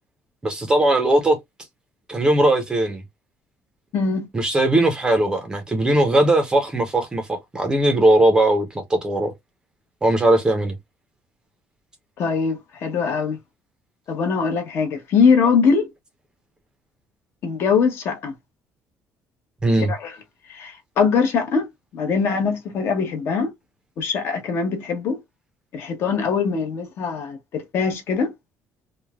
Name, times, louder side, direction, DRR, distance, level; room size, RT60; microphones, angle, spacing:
voice 1, 0.4-1.4 2.1-3.0 4.3-9.3 10.0-10.7 19.6-19.9, right 1 dB, 15° right, 0.5 m, -19 dB
voice 2, 3.9-4.3 12.2-13.4 14.1-15.9 17.4-18.3 19.9-20.2 20.5-21.7 21.9-23.5 24.0-25.2 25.7-28.3, left 5 dB, 50° left, 0.8 m, -22 dB
3.2 x 2.1 x 2.2 m
cardioid pair, 170°, 5 cm